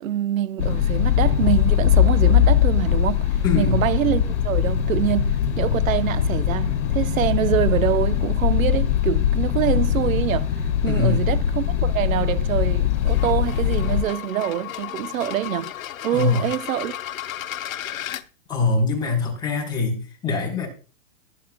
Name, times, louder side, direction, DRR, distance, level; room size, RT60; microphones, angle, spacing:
voice 1, 0.0-15.7 16.0-17.0, right 11 dB, 80° right, 0.9 m, -25 dB
sound 1, 0.6-14.0, left 10 dB, 65° left, 2.7 m, -21 dB
voice 2, 3.4-3.8 10.9-11.2 16.1-16.5 18.5-20.7, left 4 dB, 10° left, 3.5 m, -23 dB
sound 2, 12.9-18.2, left 12 dB, 90° left, 0.9 m, -34 dB
20.0 x 8.5 x 2.2 m
hypercardioid pair, 160°, 40 cm